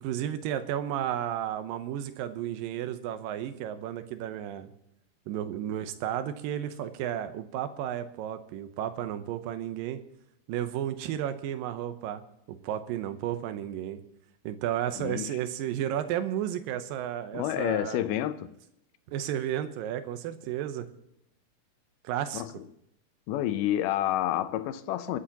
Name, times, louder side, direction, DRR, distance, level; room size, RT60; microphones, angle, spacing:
voice 1, 0.0-4.7 5.3-10.0 10.5-12.2 12.5-14.0 14.4-18.0 19.1-20.9 22.0-22.4, right 11 dB, 75° right, 2.4 m, -33 dB
voice 2, 15.0-15.3 17.3-18.5 22.3-22.6 23.3-25.2, left 12 dB, 80° left, 2.0 m, -29 dB
28.0 x 10.0 x 2.9 m
omnidirectional pair, 4.3 m